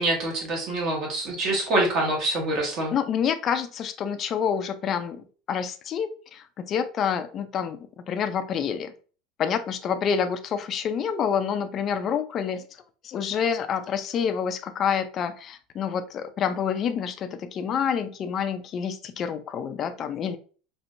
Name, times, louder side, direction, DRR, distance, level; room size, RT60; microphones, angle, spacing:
voice 1, 0.0-2.9, right 2 dB, 45° right, 0 dB, 1.4 m, -25 dB
voice 2, 2.9-8.9 9.4-12.7 13.0-20.4, left 7 dB, 35° left, 8 dB, 0.5 m, -28 dB
4.4 x 3.0 x 2.6 m, 0.38 s
supercardioid pair, 145°, 0 cm